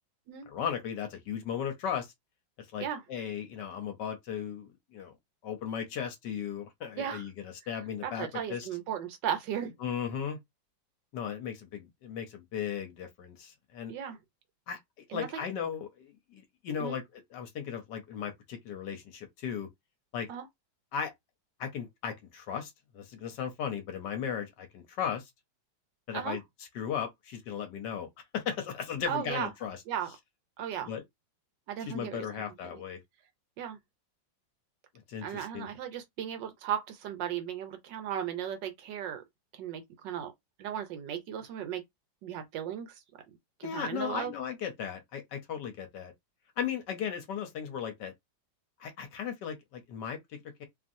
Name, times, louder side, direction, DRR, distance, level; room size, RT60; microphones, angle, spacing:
voice 1, 0.5-2.1 2.7-5.1 5.4-8.7 9.8-10.4 11.1-13.9 14.7-17.0 17.3-19.7 20.1-20.3 20.9-21.1 21.6-25.3 26.1-26.4 26.7-28.1 28.3-29.8 30.9-31.0 31.9-33.0 35.1-35.7 43.6-46.1 46.6-48.1 48.8-50.2 50.6-50.7, left 8 dB, 70° left, 1.2 m, -36 dB
voice 2, 8.0-9.7 13.9-14.2 15.1-15.3 16.8-17.0 20.3-20.5 26.1-26.4 29.1-29.5 29.9-30.1 30.6-30.9 31.7-32.8 33.6-33.8 35.2-39.2 39.5-40.3 40.6-41.8 42.2-43.0 43.6-44.3, right 9 dB, 75° right, 1.3 m, -36 dB
3.0 x 2.5 x 2.6 m
omnidirectional pair, 2.1 m